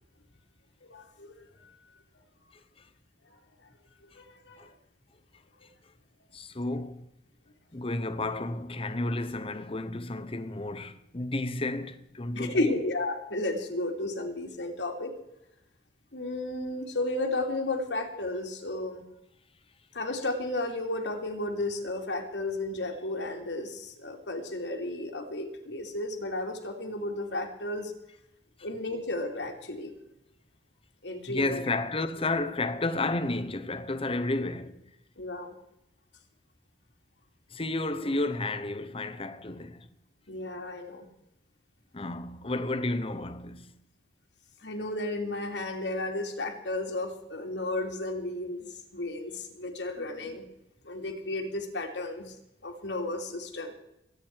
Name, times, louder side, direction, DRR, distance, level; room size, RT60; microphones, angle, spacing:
voice 1, 0.8-1.4 4.1-4.7 12.3-15.1 16.1-19.0 19.9-27.9 28.6-29.9 31.0-31.6 35.2-35.5 40.3-41.1 44.6-50.5 50.8-52.3 52.6-53.7, left 2 dB, 80° left, 2.8 m, -33 dB
voice 2, 6.3-7.1 7.7-12.7 28.6-28.7 31.3-34.8 37.5-39.9 41.9-43.7, left 2 dB, 30° left, 1.1 m, -32 dB
22.0 x 9.5 x 4.7 m
head